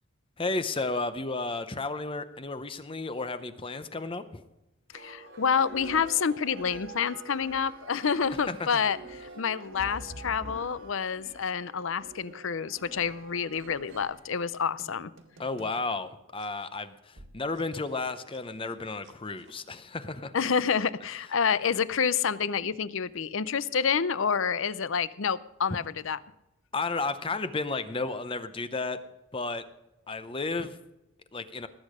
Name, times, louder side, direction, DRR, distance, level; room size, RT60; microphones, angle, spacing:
voice 1, 0.4-4.4 8.5-8.7 15.4-20.3 26.7-29.0 29.3-29.7 30.1-30.8 31.3-31.7, left 3 dB, 25° left, 11 dB, 0.7 m, -33 dB
voice 2, 4.9-9.0 9.4-15.1 20.3-26.2, left 6 dB, 65° left, 17 dB, 0.6 m, -28 dB
sound 1, 4.9-15.8 16.4-16.5 17.2-17.3 17.5-17.6 17.9-18.4 18.7-19.1 19.5-19.7, right 2 dB, 60° right, 1.7 m, -47 dB
19.0 x 8.5 x 5.0 m, 0.96 s
head